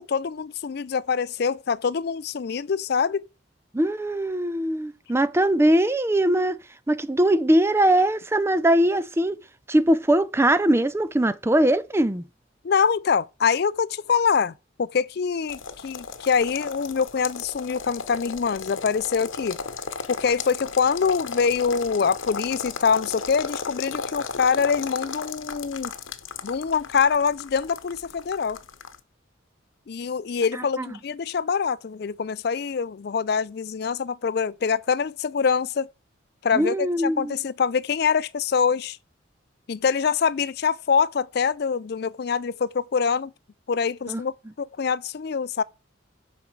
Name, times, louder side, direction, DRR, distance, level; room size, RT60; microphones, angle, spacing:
voice 1, 0.0-3.2 12.6-14.5 14.8-19.6 20.1-25.9 26.4-28.6 29.9-35.9 36.4-39.0 39.7-43.3 43.7-45.6, left 6 dB, 50° left, 0.4 m, -24 dB
voice 2, 3.7-6.6 6.9-9.4 9.7-12.2 30.8-30.9 36.5-37.3 44.1-44.2, right 1 dB, 10° right, 0.4 m, -21 dB
sound 1, 15.5-29.0, left 5 dB, 75° left, 0.9 m, -35 dB
7.8 x 5.2 x 7.4 m
head